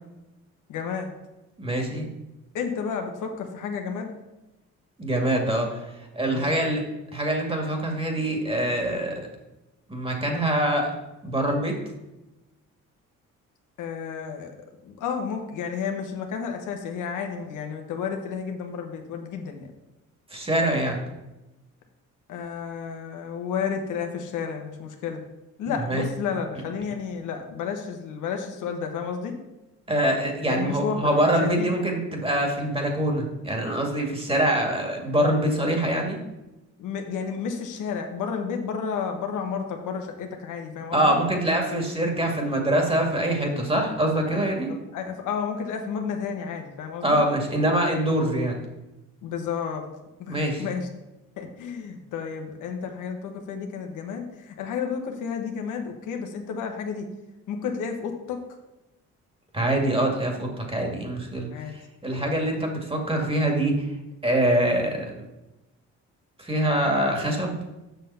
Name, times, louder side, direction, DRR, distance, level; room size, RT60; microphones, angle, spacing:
voice 1, 0.7-1.1 2.5-4.1 6.2-6.6 13.8-14.5 14.8-19.7 22.3-25.2 25.6-29.3 30.5-31.7 36.8-41.2 44.3-47.2 49.2-49.9 50.2-50.9 51.4-57.1 57.5-58.4 61.5-61.7 62.2-62.4, left 6 dB, 85° left, 4 dB, 1.2 m, -32 dB
voice 2, 1.6-2.1 5.0-6.8 7.1-9.2 9.9-10.9 11.2-11.7 20.3-21.0 25.8-26.1 29.9-36.2 40.9-44.7 47.0-48.6 50.3-50.6 59.5-63.9 64.2-65.1 66.4-67.6, right 1 dB, 20° right, 2 dB, 2.2 m, -24 dB
7.1 x 5.9 x 5.6 m, 1.0 s
cardioid pair, 90°, 30 cm